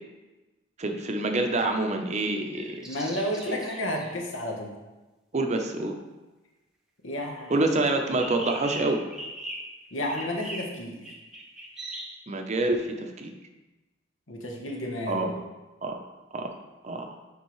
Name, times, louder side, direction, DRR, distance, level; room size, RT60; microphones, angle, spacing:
voice 1, 0.8-2.9 3.5-3.6 5.3-6.0 7.5-9.0 12.3-13.3 15.1-15.3 15.8-16.0 16.3-16.6 16.8-17.1, right 2 dB, 35° right, 4 dB, 0.6 m, -27 dB
sound 1, 2.5-4.2 8.1-9.8 10.1-12.2, right 1 dB, 5° right, 0.8 m, -40 dB
voice 2, 2.9-4.7 7.0-7.7 9.9-11.1 14.3-15.4, left 1 dB, 85° left, 0 dB, 1.2 m, -32 dB
9.9 x 3.6 x 3.1 m, 1.1 s
head